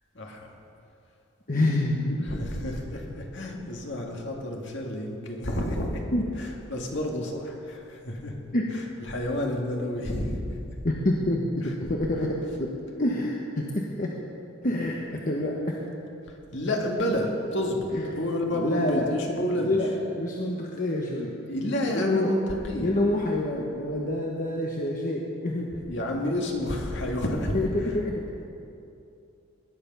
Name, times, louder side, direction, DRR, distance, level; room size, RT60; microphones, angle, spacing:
voice 1, 0.2-0.5 2.3-6.0 6.7-8.3 9.1-10.5 16.5-17.9 18.2-19.8 21.5-23.0 25.9-27.6, left 1 dB, 60° left, 0 dB, 2.1 m, -30 dB
voice 2, 1.5-2.3 6.1-6.2 8.5-8.7 10.8-12.7 13.0-14.1 14.6-15.8 17.9-18.2 18.5-21.4 21.9-22.3 22.8-25.7 27.5-28.2, left 1 dB, 40° left, -1 dB, 1.1 m, -27 dB
19.0 x 10.5 x 5.6 m, 2.7 s
head